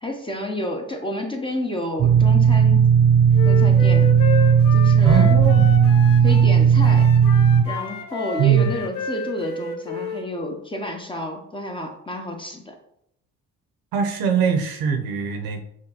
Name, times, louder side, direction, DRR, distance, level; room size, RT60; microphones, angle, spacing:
voice 1, 0.0-2.9 3.4-4.2 4.7-5.4 6.2-7.1 7.6-12.7, left 1 dB, 15° left, 2 dB, 0.9 m, -30 dB
sound 1, 2.0-7.6, right 7 dB, 30° right, 0.5 m, -15 dB
Wind instrument woodwind instrument, 3.3-6.5 6.8-10.2, left 5 dB, 70° left, 0.8 m, -31 dB
voice 2, 5.0-5.7 8.4-8.7 13.9-15.6, right 7 dB, 65° right, 5 dB, 0.9 m, -21 dB
5.9 x 2.5 x 2.9 m, 0.73 s
hypercardioid pair, 60°, 38 cm